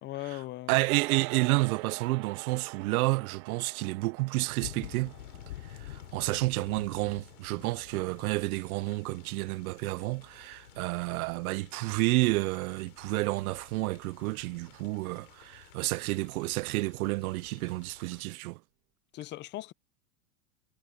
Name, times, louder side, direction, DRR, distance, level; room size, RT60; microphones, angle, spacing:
voice 1, 0.0-0.7 19.1-19.7, left 16 dB, 25° left, 0.5 m, -38 dB
voice 2, 0.7-5.1 5.8-18.6, right 21 dB, 80° right, 0.6 m, -30 dB
sound 1, 0.9-10.4, right 22 dB, 50° right, 2.0 m, -46 dB
sound 2, 4.6-18.2, left 14 dB, 90° left, 5.6 m, -50 dB
supercardioid pair, 135°, 42 cm